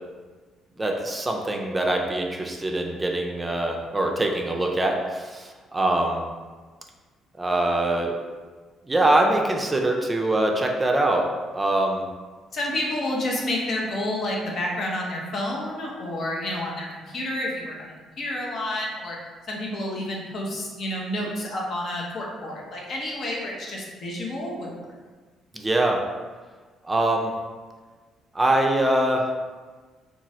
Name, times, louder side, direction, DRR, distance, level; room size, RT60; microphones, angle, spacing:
voice 1, 0.8-6.2 7.4-8.2 8.9-11.2 11.5-12.0 25.5-26.0 26.8-27.3 28.3-29.3, right 1 dB, 20° right, 1 dB, 0.4 m, -23 dB
voice 2, 12.5-19.2 19.5-24.9, left 1 dB, 55° left, -2 dB, 0.7 m, -30 dB
2.9 x 2.4 x 2.7 m, 1.4 s
supercardioid pair, 60°, 0 cm